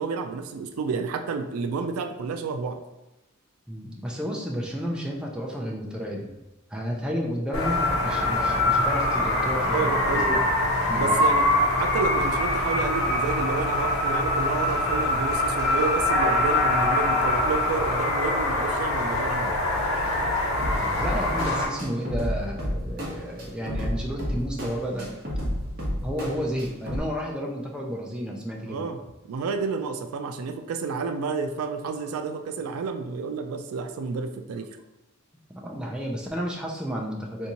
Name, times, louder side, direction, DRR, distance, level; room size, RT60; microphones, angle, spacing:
voice 1, 0.0-2.8 9.7-10.3 10.9-11.5 11.8-19.6 28.7-29.0 29.3-34.7, right 5 dB, 85° right, 8 dB, 0.3 m, -30 dB
voice 2, 3.7-6.3 6.7-10.4 10.9-11.2 20.6-25.1 26.0-28.9 35.5-37.5, equal, 5° right, -2 dB, 0.4 m, -32 dB
sound 1, 7.5-21.7, left 1 dB, 75° left, 1.0 m, -24 dB
sound 2, 20.6-27.0, equal, 45° right, 0.8 m, -31 dB
3.4 x 2.7 x 2.9 m, 0.98 s
head